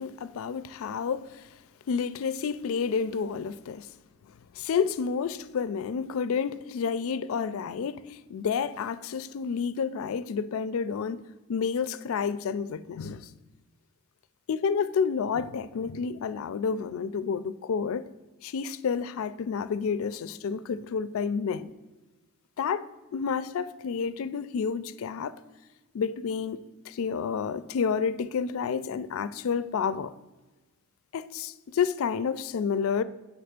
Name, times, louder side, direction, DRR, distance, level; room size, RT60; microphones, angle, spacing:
voice 1, 0.0-1.5 1.9-3.9 4.5-13.3 14.5-18.1 18.4-21.7 22.6-25.3 25.9-30.1 31.1-33.0, left 6 dB, 70° left, 0.4 m, -30 dB
8.4 x 3.4 x 6.5 m
head